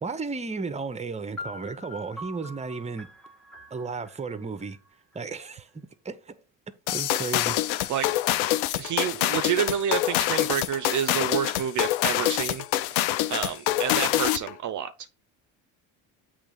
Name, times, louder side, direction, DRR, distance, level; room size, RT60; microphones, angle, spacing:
voice 1, 0.0-3.1 3.7-4.8 5.1-5.7 6.0-6.4 6.7-7.9, right 4 dB, 15° right, 0.8 m, -34 dB
sound 1, 1.4-5.2, left 2 dB, ahead, 1.2 m, -43 dB
sound 2, 6.9-14.5, left 14 dB, 90° left, 0.6 m, -25 dB
voice 2, 8.8-12.6 13.3-14.9, right 9 dB, 50° right, 0.5 m, -28 dB
7.8 x 3.2 x 5.0 m
cardioid pair, 95°, 38 cm